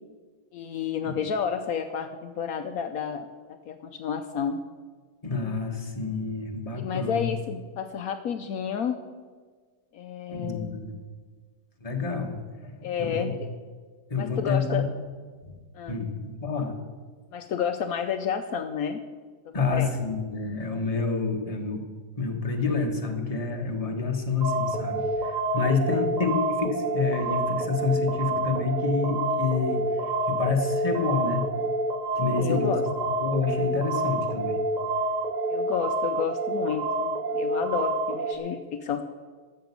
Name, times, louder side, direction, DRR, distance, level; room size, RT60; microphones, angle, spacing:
voice 1, 0.5-3.3 3.7-4.6 6.7-9.0 9.9-10.8 12.8-13.5 14.2-14.9 15.7-16.0 17.3-19.0 19.7-19.9 25.6-26.1 32.4-32.8 35.5-39.0, left 7 dB, 70° left, 7 dB, 1.1 m, -31 dB
voice 2, 5.2-7.3 10.3-10.9 11.8-12.3 12.6-13.3 14.1-14.9 15.4-15.5 15.9-16.7 19.5-21.8 22.2-31.5 32.1-34.6, left 4 dB, 25° left, 2 dB, 1.5 m, -28 dB
sound 1, 24.4-38.4, right 2 dB, 30° right, 1.1 m, -28 dB
13.0 x 7.0 x 8.3 m, 1.5 s
omnidirectional pair, 1.6 m